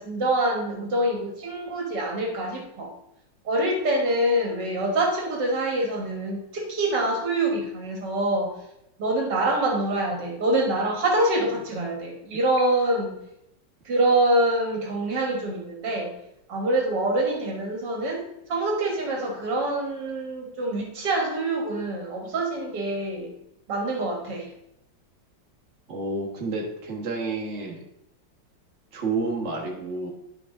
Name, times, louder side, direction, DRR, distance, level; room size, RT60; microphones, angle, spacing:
voice 1, 0.0-2.9 3.5-8.5 9.0-13.1 13.9-16.1 16.5-18.2 18.5-23.3 23.7-24.5, right 1 dB, 65° right, 1 dB, 2.0 m, -25 dB
voice 2, 25.9-27.8 28.9-30.1, right 3 dB, 40° right, -2 dB, 1.6 m, -30 dB
11.0 x 4.6 x 3.7 m, 0.82 s
omnidirectional pair, 2.0 m